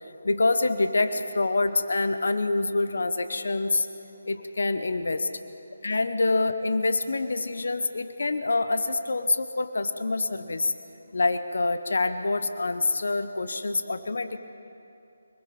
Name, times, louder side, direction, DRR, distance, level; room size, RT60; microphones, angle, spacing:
voice 1, 0.2-3.9 4.3-5.3 5.8-10.7 11.1-14.4, left 3 dB, 70° left, 10 dB, 1.1 m, -26 dB
24.5 x 20.5 x 5.3 m, 2.9 s
figure-of-eight pair, 155°, 0 cm